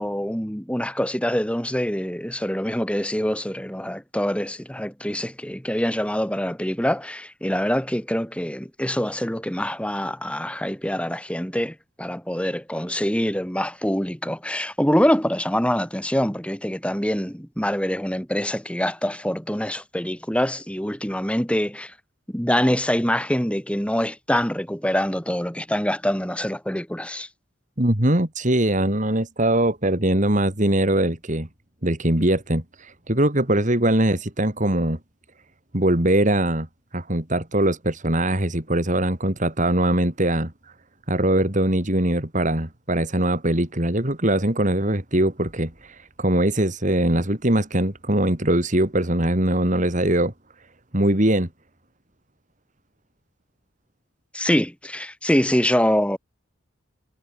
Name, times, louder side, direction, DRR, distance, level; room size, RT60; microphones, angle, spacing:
voice 1, 0.0-21.9 22.3-27.3 54.3-56.2, equal, 5° left, 4.6 m, -25 dB
voice 2, 27.8-31.5 31.8-35.0 35.7-36.7 36.9-40.5 41.1-50.3 50.9-51.5, right 1 dB, 40° right, 3.2 m, -21 dB
head